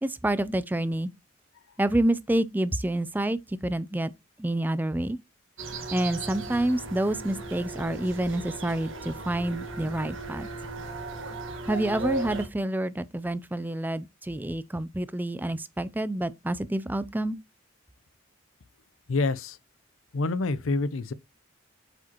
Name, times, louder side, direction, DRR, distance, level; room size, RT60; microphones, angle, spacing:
voice 1, 0.0-1.1 1.8-4.1 4.4-5.2 5.9-10.5 11.7-17.4, right 1 dB, 10° right, 0.3 m, -28 dB
sound 1, 5.6-12.5, right 2 dB, 75° right, 1.5 m, -36 dB
voice 2, 19.1-19.6 20.1-21.1, left 3 dB, 85° left, 0.6 m, -27 dB
7.7 x 5.1 x 2.9 m
head